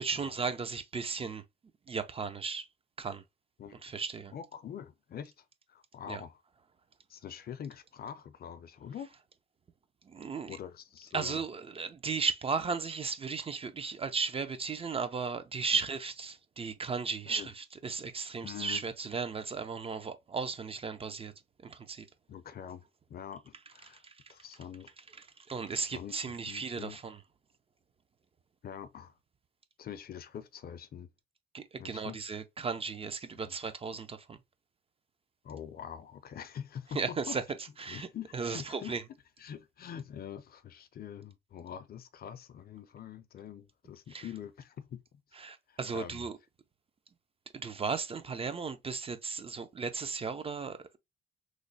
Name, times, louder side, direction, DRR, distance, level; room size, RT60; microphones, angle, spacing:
voice 1, 0.0-1.4 1.9-2.7 3.0-3.2 3.8-4.3 6.1-6.2 10.1-10.6 11.1-21.3 21.6-22.1 23.9-24.3 25.2-27.2 31.5-34.4 36.9-37.4 37.8-38.1 38.3-39.0 44.1-44.3 45.4-46.4 47.5-51.0, right 5 dB, 30° right, 0.4 m, -35 dB
voice 2, 4.3-6.4 7.1-9.1 10.5-11.4 17.3-17.5 18.4-18.8 22.3-24.0 24.3-24.9 25.7-27.0 28.6-29.2 29.8-31.1 31.8-32.2 33.5-33.6 35.4-37.4 37.9-39.0 39.4-45.4 45.7-46.3, left 9 dB, 50° left, 0.5 m, -44 dB
3.1 x 2.0 x 3.9 m
cardioid pair, 90°, 20 cm